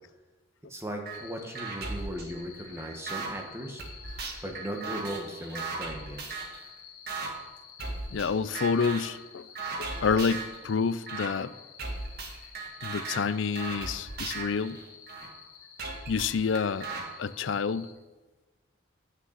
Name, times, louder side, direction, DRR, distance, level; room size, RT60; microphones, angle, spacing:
voice 1, 0.7-3.8 4.4-6.2, equal, 15° right, 2 dB, 1.3 m, -37 dB
sound 1, 1.1-17.9, left 8 dB, 85° left, 2.2 m, -51 dB
sound 2, 1.1-1.2 1.6-3.3 3.8-6.6 7.1-7.3 7.8-8.3 8.6-9.1 9.6-10.6 11.1-11.3 11.8-15.3 15.8-17.0, right 3 dB, 50° right, 1.8 m, -37 dB
voice 2, 8.1-9.5 9.8-11.5 12.8-14.8 16.1-16.9 17.2-17.9, left 5 dB, 65° left, 16 dB, 0.4 m, -28 dB
9.4 x 6.7 x 7.3 m, 1.3 s
head